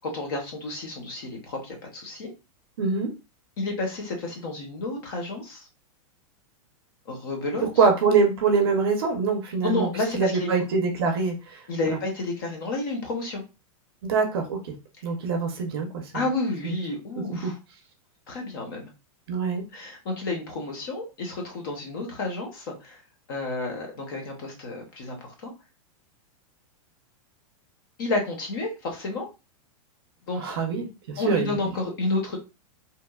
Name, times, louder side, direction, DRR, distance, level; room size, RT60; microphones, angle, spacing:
voice 1, 0.0-2.3 3.6-5.7 7.1-7.7 9.6-10.5 11.7-13.4 16.1-17.6 18.3-18.9 19.7-23.0 23.3-25.5 28.0-29.3 30.2-30.5 31.2-32.4, left 2 dB, 40° left, 2 dB, 0.7 m, -30 dB
voice 2, 2.8-3.1 7.8-9.9 10.1-11.6 14.0-14.7 15.0-16.2 16.6-16.7 17.4-17.5 19.3-19.6 30.4-31.5, right 5 dB, 45° right, 3 dB, 0.6 m, -24 dB
2.9 x 2.1 x 2.2 m, 0.27 s
supercardioid pair, 180°, 18 cm